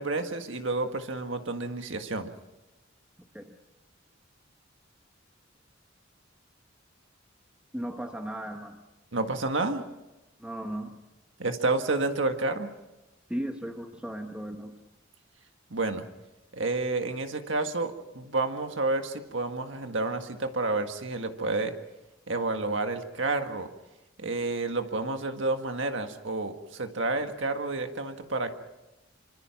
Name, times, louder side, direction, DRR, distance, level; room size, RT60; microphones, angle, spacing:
voice 1, 0.0-2.3 9.1-9.8 11.4-12.7 15.7-16.1 16.5-21.7 22.3-23.7 24.2-28.5, right 3 dB, 65° right, 6 dB, 1.7 m, -30 dB
voice 2, 7.7-8.8 10.4-11.0 13.3-14.7, right 1 dB, 5° right, 3 dB, 1.3 m, -36 dB
25.5 x 25.0 x 5.9 m, 1.0 s
head